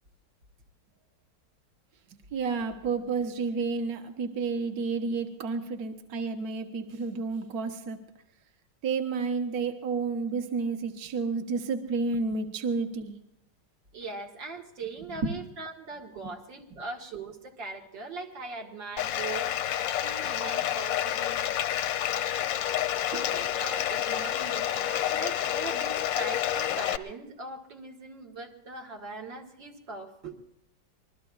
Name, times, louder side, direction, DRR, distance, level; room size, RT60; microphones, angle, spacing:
voice 1, 2.3-8.0 8.8-13.2 15.1-15.3 23.1-23.4, right 4 dB, 55° right, 5 dB, 1.6 m, -31 dB
voice 2, 13.9-19.5 20.0-21.5 23.3-30.3, right 3 dB, 85° right, 1 dB, 2.5 m, -40 dB
Bathtub (filling or washing), 19.0-27.0, left 11 dB, 85° left, 1.4 m, -29 dB
26.0 x 21.0 x 2.4 m, 0.82 s
omnidirectional pair, 2.0 m